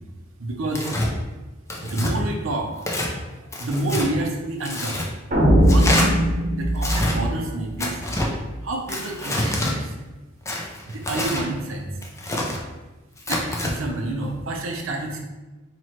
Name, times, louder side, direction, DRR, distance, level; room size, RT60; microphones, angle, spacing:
voice 1, 0.4-0.9 1.8-2.7 3.3-5.1 5.7-6.2 6.5-8.0 8.6-9.9 10.9-11.9 13.3-15.2, right 2 dB, 70° right, 1 dB, 0.6 m, -28 dB
Tearing, 0.7-1.1 1.7-2.1 2.8-3.1 3.5-4.1 4.6-5.1 5.7-6.1 6.8-7.2 7.8-8.3 8.9-9.7 10.5-11.4 12.0-12.6 13.2-13.7, left 1 dB, 15° left, 0.5 m, -26 dB
sound 1, 5.3-8.4, equal, 40° right, 1.1 m, -20 dB
3.0 x 2.9 x 4.3 m, 1.1 s
head